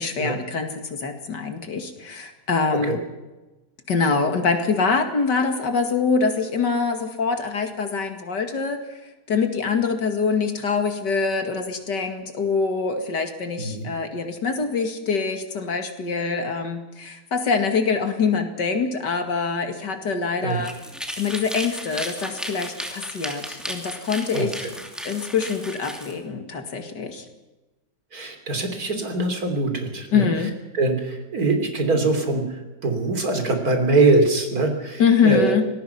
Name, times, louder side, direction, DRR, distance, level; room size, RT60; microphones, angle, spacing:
voice 1, 0.0-3.0 3.9-20.8 21.2-24.7 25.0-27.2 30.1-30.5 35.0-35.7, left 5 dB, 75° left, 6 dB, 2.8 m, -24 dB
sound 1, 20.5-26.1, equal, ahead, 2.7 m, -34 dB
voice 2, 28.1-30.3 30.7-35.6, right 3 dB, 55° right, 5 dB, 3.7 m, -22 dB
25.0 x 19.0 x 5.8 m, 1.1 s
omnidirectional pair, 1.9 m